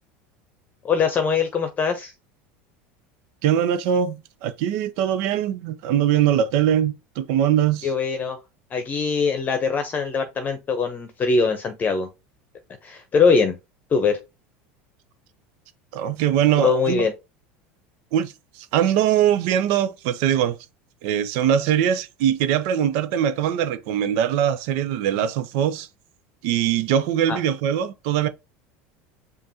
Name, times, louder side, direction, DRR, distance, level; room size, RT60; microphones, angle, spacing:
voice 1, 0.8-2.1 7.8-8.4 8.7-12.1 12.8-13.5 13.9-14.2 16.6-17.1 27.3-27.4, left 5 dB, 30° left, 0.8 m, -22 dB
voice 2, 3.4-7.9 15.9-17.1 18.1-20.6 21.0-25.9 26.4-28.3, right 10 dB, 70° right, 0.5 m, -22 dB
5.1 x 2.5 x 2.8 m
supercardioid pair, 105°, 6 cm